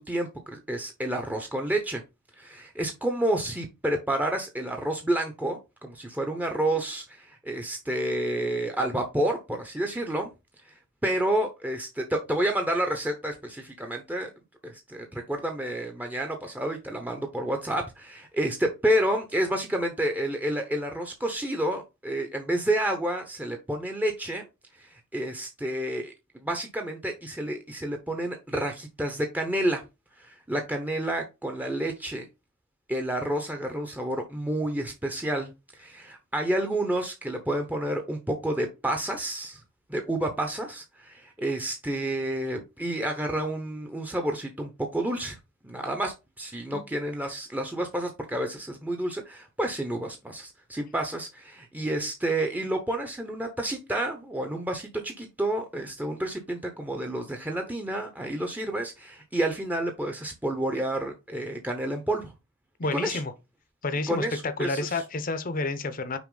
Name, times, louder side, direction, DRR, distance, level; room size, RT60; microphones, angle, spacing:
voice 1, 0.0-2.0 2.4-10.3 10.7-10.8 11.0-14.3 14.6-24.5 24.8-26.1 26.4-29.8 30.2-32.3 32.9-39.6 39.9-45.4 45.6-62.3 62.9-63.2 64.1-65.0, right 1 dB, 10° right, 0.7 m, -29 dB
voice 2, 62.8-63.3 63.8-64.3 64.6-66.2, left 3 dB, 40° left, 0.7 m, -29 dB
6.0 x 4.6 x 3.8 m
head